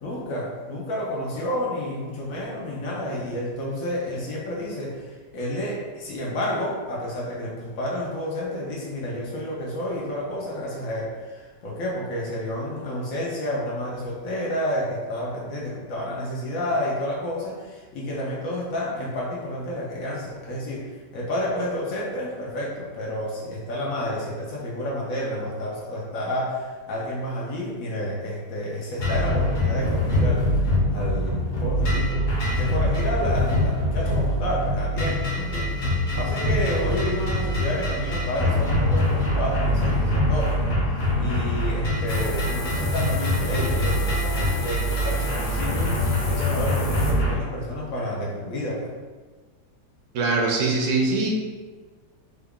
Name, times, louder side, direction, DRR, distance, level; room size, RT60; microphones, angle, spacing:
voice 1, 0.0-30.5 30.9-32.3 32.6-40.8 41.2-48.9, left 1 dB, 65° left, -4 dB, 1.0 m, -30 dB
sound 1, 29.0-47.4, left 1 dB, 50° left, 0.6 m, -24 dB
sound 2, 42.1-47.1, left 2 dB, 85° left, 1.3 m, -34 dB
voice 2, 50.1-51.3, right 3 dB, 70° right, -1 dB, 1.0 m, -22 dB
3.8 x 2.3 x 3.6 m, 1.4 s
omnidirectional pair, 1.8 m